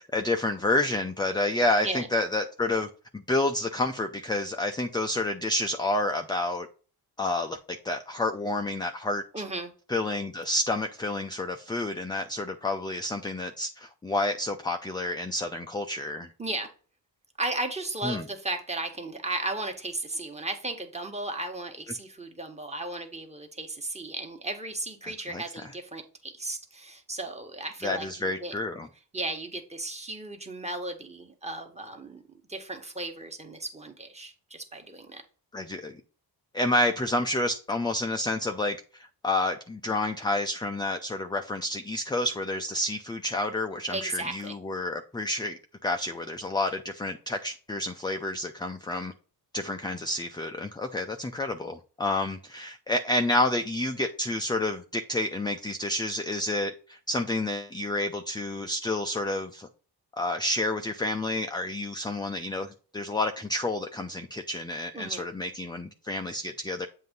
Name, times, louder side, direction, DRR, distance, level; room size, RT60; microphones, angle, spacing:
voice 1, 0.1-2.9 3.1-6.7 7.2-7.6 7.8-9.2 9.9-16.3 18.0-18.2 25.0-25.4 27.8-28.9 35.5-36.0 36.5-49.1 49.5-59.7 60.2-66.9, left 1 dB, 10° left, 0.5 m, -29 dB
voice 2, 9.3-9.7 16.4-16.7 17.4-28.5 29.1-32.2 32.5-35.2 43.9-44.6 64.9-65.2, right 2 dB, 15° right, 1.4 m, -35 dB
7.7 x 2.8 x 5.3 m
cardioid pair, 95°, 40 cm